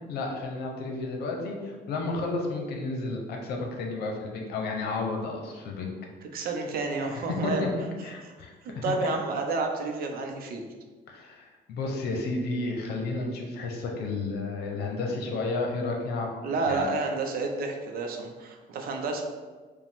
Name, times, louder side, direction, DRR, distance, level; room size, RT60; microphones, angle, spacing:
voice 1, 0.1-5.9 7.0-7.1 7.4-7.7 8.0-9.1 11.1-16.3 16.7-16.9, left 3 dB, 70° left, 1 dB, 0.8 m, -32 dB
voice 2, 6.3-7.7 8.6-10.7 16.4-19.2, right 3 dB, 60° right, 3 dB, 0.6 m, -30 dB
4.9 x 2.3 x 3.6 m, 1.4 s
cardioid pair, 110°, 17 cm